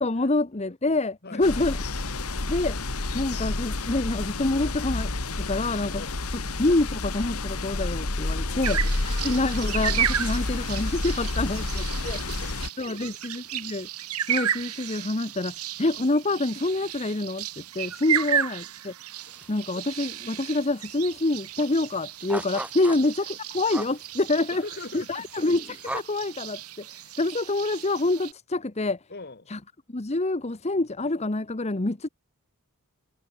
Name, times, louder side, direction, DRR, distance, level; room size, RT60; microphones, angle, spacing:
voice 1, 0.0-1.8 2.5-2.8 3.1-5.1 5.4-6.0 6.3-12.2 12.8-13.9 14.3-18.9 19.5-24.6 24.9-29.0 29.5-29.6 29.9-32.1, left 2 dB, 30° left, 1.0 m, -27 dB
sound 1, 1.4-12.7, left 2 dB, 80° left, 2.1 m, -29 dB
voice 2, 8.3-8.8 11.6-13.0 18.1-18.2 22.8-23.0 24.5-25.3 29.1-29.5, left 3 dB, 45° left, 2.2 m, -43 dB
sound 2, 8.6-28.3, right 10 dB, 90° right, 2.0 m, -33 dB
sound 3, 19.2-19.8 20.1-20.8 21.1-21.2 21.5-26.0, right 1 dB, 5° right, 2.0 m, -38 dB
head